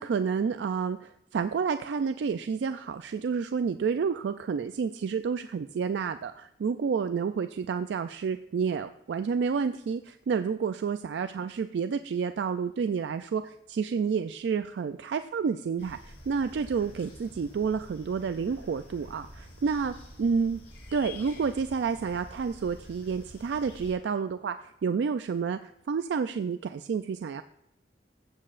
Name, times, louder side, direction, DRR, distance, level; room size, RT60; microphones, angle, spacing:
voice 1, 0.0-20.6 20.9-27.4, right 6 dB, 75° right, 10 dB, 0.3 m, -30 dB
sound 1, 15.8-23.9, left 1 dB, 85° left, 3.1 m, -48 dB
15.0 x 7.5 x 2.5 m, 0.83 s
head